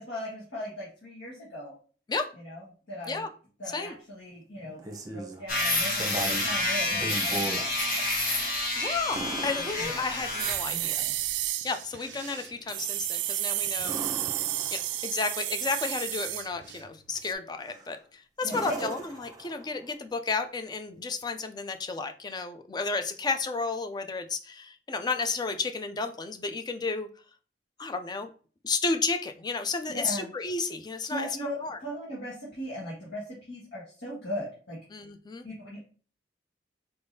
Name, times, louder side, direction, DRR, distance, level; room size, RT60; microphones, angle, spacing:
voice 1, 0.0-1.7 2.4-3.3 3.6-4.8 5.1-8.5 9.6-10.0 10.6-11.1 18.4-18.9 29.9-30.3 31.1-34.8 35.4-35.8, equal, 80° left, -7 dB, 1.5 m, -38 dB
sound 1, 4.6-5.4 5.9-6.5 6.9-7.6 9.1-10.4 13.8-15.1 17.6-18.0 18.5-19.9 22.0-22.1, right 2 dB, 20° right, 0.8 m, -37 dB
sound 2, 5.5-10.6, left 2 dB, 55° left, 1.3 m, -29 dB
voice 2, 8.7-11.0 11.6-14.4 14.7-27.1 27.8-28.3 28.6-31.8 34.9-35.4, left 4 dB, 25° left, 8 dB, 0.4 m, -32 dB
sound 3, 10.4-16.9 17.1-17.3, right 14 dB, 80° right, 0.3 m, -32 dB
4.5 x 3.4 x 2.7 m, 0.40 s
head